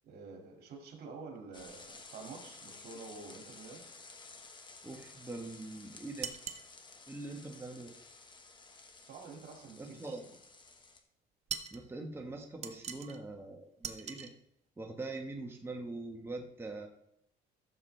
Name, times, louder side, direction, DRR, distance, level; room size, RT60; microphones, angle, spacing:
voice 1, 0.0-3.9 9.1-10.3, right 4 dB, 70° right, 3 dB, 2.4 m, -49 dB
sound 1, 1.5-11.0, left 3 dB, 30° left, 1.3 m, -54 dB
voice 2, 4.8-6.3 7.1-7.9 9.8-10.2 11.7-14.3 14.8-16.9, right 2 dB, 15° right, 2 dB, 1.3 m, -43 dB
sound 2, 6.2-6.7 11.5-11.8 12.6-13.2 13.8-14.3, right 7 dB, 40° right, 0.9 m, -41 dB
15.0 x 7.1 x 3.3 m, 0.74 s
cardioid pair, 110°, 17 cm